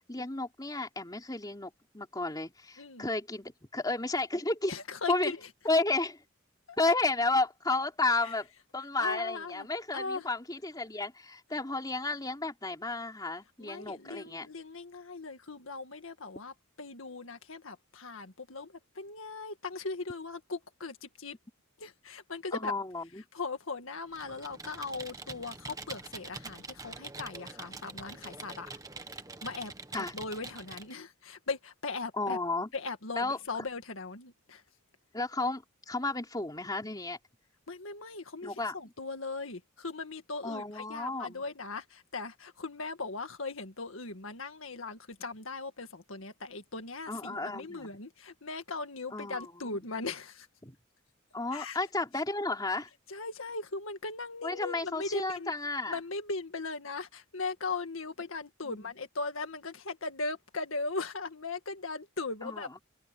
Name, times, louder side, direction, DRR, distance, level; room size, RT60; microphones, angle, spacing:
voice 1, 0.0-4.7 5.1-5.3 5.7-6.2 6.8-8.5 8.7-14.5 22.5-23.2 29.9-30.1 32.2-32.7 33.2-33.4 35.1-37.2 38.4-38.7 40.4-41.4 47.1-47.9 49.1-49.8 50.6-50.8 51.3-52.9 54.4-56.0 58.7-58.8 62.4-62.6, left 2 dB, 20° left, 3.4 m, -32 dB
voice 2, 2.8-3.1 4.7-5.5 6.7-6.8 8.2-8.3 9.0-9.7 9.9-10.3 13.6-21.4 21.8-22.7 23.2-28.7 29.1-32.4 32.7-34.6 37.7-50.5 51.5-51.8 53.1-55.5 55.9-62.8, left 3 dB, 80° left, 1.9 m, -39 dB
Computer keyboard, 24.1-30.9, right 3 dB, 15° right, 1.4 m, -45 dB
head